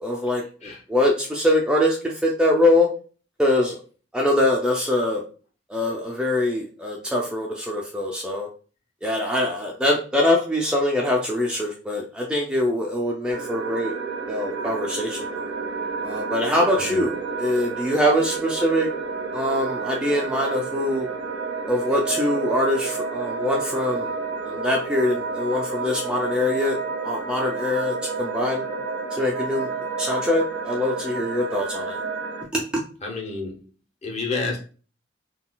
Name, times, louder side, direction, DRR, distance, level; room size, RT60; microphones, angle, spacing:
voice 1, 0.0-2.9 3.4-3.8 4.1-5.2 5.7-8.5 9.0-14.0 14.3-15.5 16.0-18.9 19.3-21.1 21.7-24.2 24.5-26.8 27.0-28.7 29.1-29.7 30.0-32.0 32.5-32.8, left 1 dB, 5° right, -2 dB, 0.4 m, -23 dB
sound 1, 13.3-32.4, right 4 dB, 75° right, 0.9 m, -30 dB
voice 2, 33.0-33.6 34.0-34.6, left 3 dB, 35° left, 0 dB, 0.8 m, -29 dB
3.7 x 2.3 x 2.2 m, 0.38 s
head